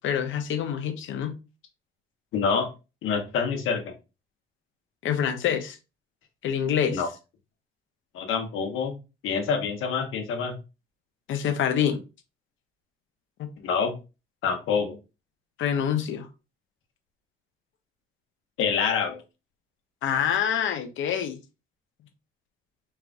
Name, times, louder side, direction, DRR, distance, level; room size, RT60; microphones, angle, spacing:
voice 1, 0.0-1.4 5.0-5.8 6.4-7.0 11.3-12.0 13.4-13.5 15.6-16.3 20.0-21.4, left 8 dB, 70° left, 0.9 m, -26 dB
voice 2, 2.3-2.7 3.0-3.8 6.9-7.1 8.1-8.9 9.2-10.5 13.6-13.9 14.4-15.0 18.6-19.2, left 6 dB, 90° left, 1.3 m, -26 dB
4.6 x 3.6 x 2.5 m
cardioid pair, 145°, 21 cm